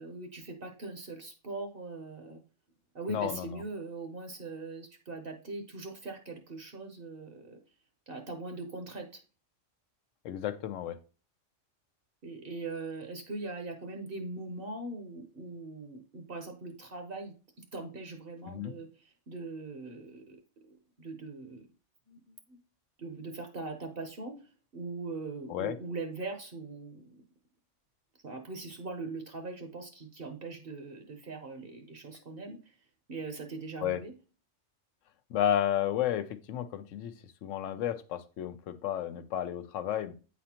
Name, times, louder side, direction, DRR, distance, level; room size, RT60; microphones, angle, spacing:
voice 1, 0.0-2.4 2.9-7.6 8.1-9.2 12.2-17.3 17.7-21.7 22.1-22.6 23.0-24.3 24.7-27.2 28.2-32.8 33.1-34.1, right 3 dB, 55° right, 5 dB, 0.9 m, -41 dB
voice 2, 3.1-3.6 10.2-11.0 18.5-18.7 25.5-25.8 33.8-34.0 35.3-37.1 37.4-40.1, left 10 dB, 85° left, 11 dB, 1.0 m, -32 dB
8.6 x 4.1 x 2.9 m, 0.36 s
omnidirectional pair, 1.3 m